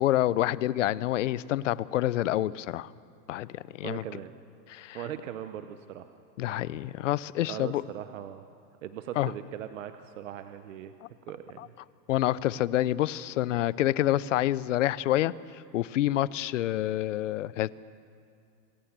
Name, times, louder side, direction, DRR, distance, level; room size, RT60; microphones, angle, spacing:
voice 1, 0.0-2.9 3.3-4.0 4.7-5.0 6.4-7.8 9.2-9.3 11.6-11.7 12.1-15.3 15.7-17.7, left 14 dB, 55° left, 20 dB, 0.5 m, -27 dB
voice 2, 3.8-4.4 4.9-6.1 6.6-6.7 7.5-8.4 8.8-10.9 11.3-11.7, right 10 dB, 50° right, 9 dB, 0.9 m, -39 dB
26.5 x 16.0 x 7.3 m, 2.5 s
supercardioid pair, 180°, 48 cm